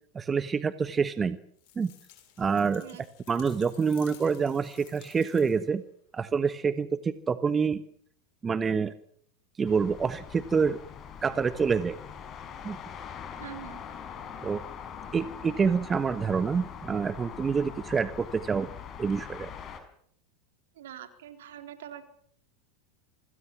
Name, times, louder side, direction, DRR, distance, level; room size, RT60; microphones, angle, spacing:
voice 1, 0.1-1.4 1.8-1.9 2.4-2.8 3.3-5.8 6.1-7.8 8.4-8.9 9.6-10.8 11.2-12.0 12.6-12.8 14.4-14.6 15.1-18.7 19.0-19.5, right 5 dB, 20° right, 13 dB, 1.2 m, -27 dB
sound 1, 1.6-5.8, left 13 dB, 60° left, 6.9 m, -55 dB
sound 2, 9.7-19.8, left 8 dB, 35° left, 5.4 m, -43 dB
voice 2, 13.4-13.8 20.8-22.0, right 10 dB, 75° right, 7 dB, 4.0 m, -44 dB
25.5 x 19.5 x 7.4 m, 0.65 s
hypercardioid pair, 95°, 0 cm